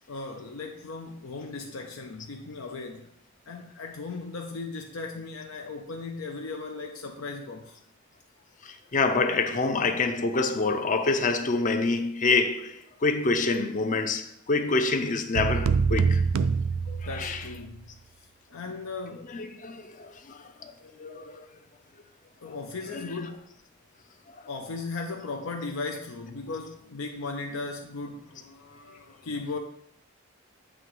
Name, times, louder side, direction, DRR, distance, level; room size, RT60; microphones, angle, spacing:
voice 1, 0.1-3.1 3.5-7.8 17.0-19.4 22.4-23.6 24.5-29.6, left 3 dB, 85° left, 0.6 m, -37 dB
voice 2, 8.6-16.2 16.9-17.4 19.3-20.7 21.0-21.5 22.9-23.1, left 3 dB, 40° left, 0.5 m, -27 dB
sound 1, 15.4-17.6, right 5 dB, 90° right, 0.4 m, -25 dB
7.5 x 2.9 x 4.7 m
head